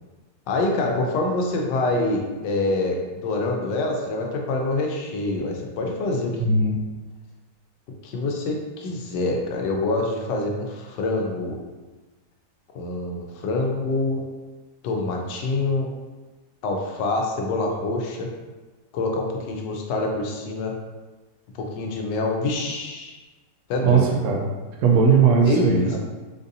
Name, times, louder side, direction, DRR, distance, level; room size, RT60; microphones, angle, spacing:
voice 1, 0.5-6.3 8.0-11.6 12.7-14.2 14.8-15.9 16.6-18.3 18.9-20.7 21.6-23.2 23.7-24.1 25.4-26.0, left 2 dB, 80° left, 1 dB, 1.2 m, -25 dB
voice 2, 6.4-6.8 23.8-24.5 24.8-26.0, right 5 dB, 70° right, -1 dB, 1.0 m, -18 dB
4.0 x 2.6 x 2.6 m, 1.2 s
omnidirectional pair, 1.9 m